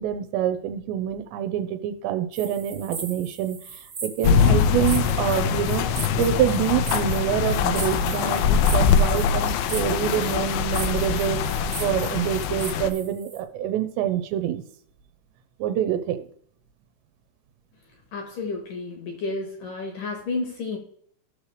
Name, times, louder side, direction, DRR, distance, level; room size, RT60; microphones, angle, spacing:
voice 1, 0.0-5.9 6.2-14.6 15.6-16.2, right 11 dB, 90° right, 8 dB, 2.9 m, -26 dB
sound 1, 2.3-13.4, right 5 dB, 65° right, 1.0 m, -38 dB
sound 2, 4.2-12.9, left 6 dB, 90° left, 2.9 m, -23 dB
voice 2, 18.1-20.8, left 3 dB, 65° left, 3 dB, 2.2 m, -31 dB
15.5 x 6.4 x 3.2 m, 0.64 s
omnidirectional pair, 5.1 m